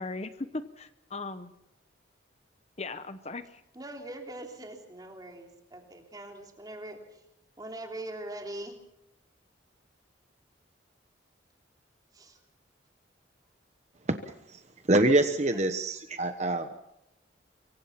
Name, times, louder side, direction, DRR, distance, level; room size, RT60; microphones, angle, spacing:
voice 1, 0.0-1.5 2.8-3.6, left 3 dB, 35° left, 12 dB, 0.9 m, -38 dB
voice 2, 3.7-7.2 7.6-8.8 12.1-12.4, right 1 dB, 20° right, 2 dB, 3.3 m, -42 dB
voice 3, 14.9-16.7, right 2 dB, 35° right, 8 dB, 1.1 m, -25 dB
25.0 x 24.0 x 5.8 m, 0.84 s
head